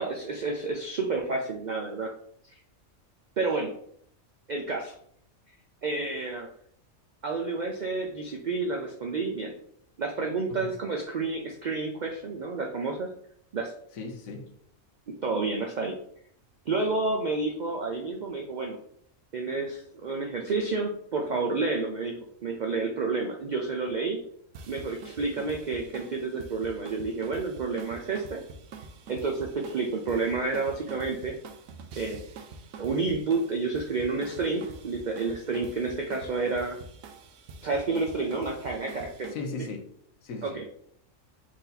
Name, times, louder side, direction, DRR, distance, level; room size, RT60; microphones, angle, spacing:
voice 1, 0.0-2.1 2.5-2.6 3.4-3.7 4.5-5.0 5.8-6.5 7.2-9.5 10.0-13.1 13.5-13.7 15.2-16.0 16.7-18.8 19.3-24.2 24.7-28.4 29.1-31.4 32.0-32.2 32.8-36.8 37.6-39.4 40.4-40.6, right 3 dB, 65° right, 0.4 m, -30 dB
voice 2, 13.9-14.5 39.3-39.9 40.2-40.7, left 3 dB, 90° left, 1.2 m, -37 dB
sound 1, 24.5-39.3, right 4 dB, 90° right, 1.1 m, -46 dB
4.5 x 2.7 x 3.9 m
omnidirectional pair, 1.4 m